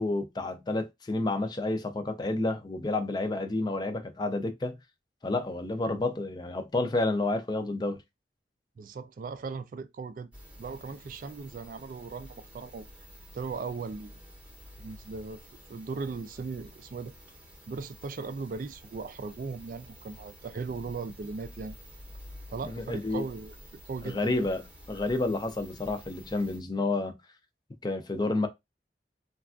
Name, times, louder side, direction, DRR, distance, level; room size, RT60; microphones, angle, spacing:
voice 1, 0.0-4.8 5.2-8.0 22.7-23.3 24.0-24.6 24.9-27.2 27.8-28.5, left 2 dB, 25° left, 0.4 m, -30 dB
voice 2, 8.8-10.3 10.6-12.9 13.3-14.2 14.8-15.4 15.7-17.1 17.7-21.8 22.5-24.4, right 4 dB, 50° right, 0.3 m, -38 dB
sound 1, 10.3-26.6, equal, 10° right, 0.8 m, -50 dB
3.3 x 2.3 x 2.3 m
head